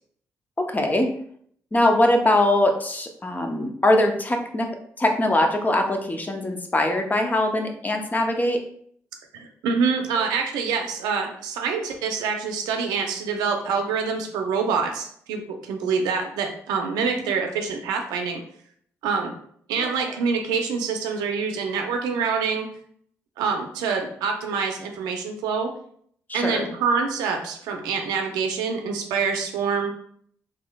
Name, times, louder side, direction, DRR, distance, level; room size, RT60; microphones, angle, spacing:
voice 1, 0.7-1.1 1.7-4.7 5.0-8.6 10.2-10.3 19.8-19.9 26.3-26.7, left 1 dB, 25° left, 4 dB, 0.7 m, -22 dB
voice 2, 9.3-18.4 19.0-19.4 19.7-22.7 23.4-25.7 26.3-29.9, right 5 dB, 85° right, 3 dB, 0.5 m, -26 dB
3.6 x 3.1 x 2.3 m, 0.62 s
hypercardioid pair, 50°, 7 cm